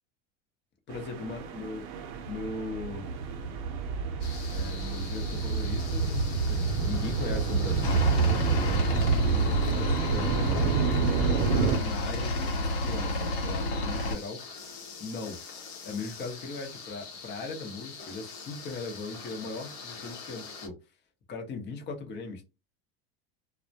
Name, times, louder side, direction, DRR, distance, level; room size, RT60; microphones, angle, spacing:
voice 1, 0.9-1.9 2.3-3.1 4.5-6.2 6.5-10.9 11.4-14.4 15.0-15.4 15.8-20.7 21.3-22.4, left 3 dB, 35° left, 0.8 m, -39 dB
sound 1, 0.9-11.8, right 4 dB, 65° right, 0.6 m, -28 dB
sound 2, 4.2-20.7, left 5 dB, 60° left, 0.9 m, -44 dB
Aircraft, 7.8-14.1, left 2 dB, 80° left, 1.1 m, -31 dB
2.2 x 2.1 x 2.7 m
supercardioid pair, 110°, 31 cm